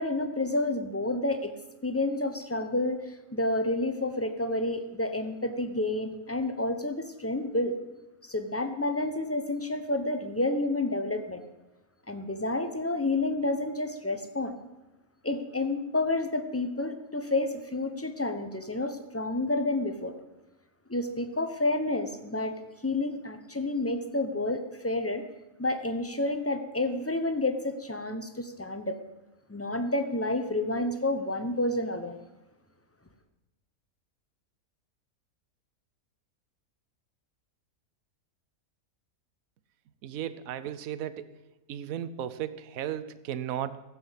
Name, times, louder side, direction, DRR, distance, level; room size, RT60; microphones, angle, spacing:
voice 1, 0.0-1.5 1.8-7.8 8.2-11.4 12.1-14.5 15.2-20.1 20.9-25.2 25.6-29.0 29.5-32.2, left 2 dB, 15° left, 8 dB, 0.7 m, -30 dB
voice 2, 40.0-41.3 41.7-43.8, right 10 dB, 70° right, 13 dB, 1.1 m, -35 dB
14.5 x 7.6 x 8.1 m, 1.0 s
omnidirectional pair, 1.5 m